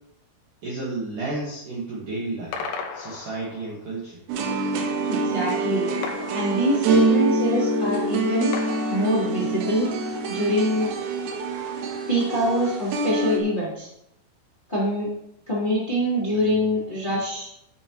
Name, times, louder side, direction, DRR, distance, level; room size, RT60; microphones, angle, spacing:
voice 1, 0.6-2.6 2.9-4.2, right 2 dB, 65° right, -4 dB, 2.2 m, -32 dB
sound 1, 2.5-3.9 6.0-7.2 8.5-9.7, left 5 dB, 75° left, 2.9 m, -36 dB
sound 2, 4.3-13.4, right 2 dB, 90° right, 3.7 m, -25 dB
voice 2, 5.0-5.9 6.3-8.5 8.9-9.9 10.3-10.9 12.1-13.9 14.7-15.1 15.5-17.5, equal, 15° left, -7 dB, 1.9 m, -24 dB
12.0 x 8.0 x 3.0 m, 0.79 s
omnidirectional pair, 5.6 m